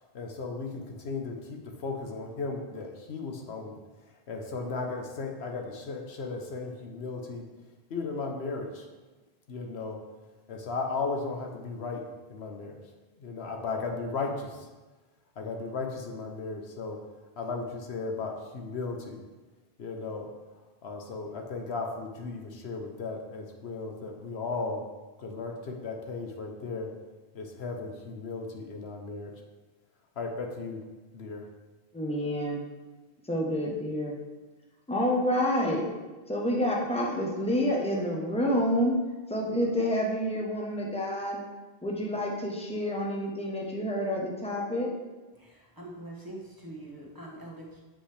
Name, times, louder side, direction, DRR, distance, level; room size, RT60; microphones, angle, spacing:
voice 1, 0.1-3.8 4.3-7.5 7.9-8.9 9.5-10.0 10.5-12.8 13.2-14.7 15.4-17.0 17.4-19.2 19.8-20.3 20.8-24.9 25.2-26.9 27.3-29.3 30.2-30.8 31.1-31.5, left 3 dB, 85° left, 3 dB, 1.1 m, -35 dB
voice 2, 31.9-32.6 33.3-34.1 34.9-35.9 36.3-39.0 39.3-41.4 41.8-44.9, equal, 5° left, -1 dB, 0.9 m, -28 dB
voice 3, 45.3-47.8, right 1 dB, 20° right, -4 dB, 1.3 m, -44 dB
7.9 x 5.2 x 3.4 m, 1.2 s
omnidirectional pair, 1.1 m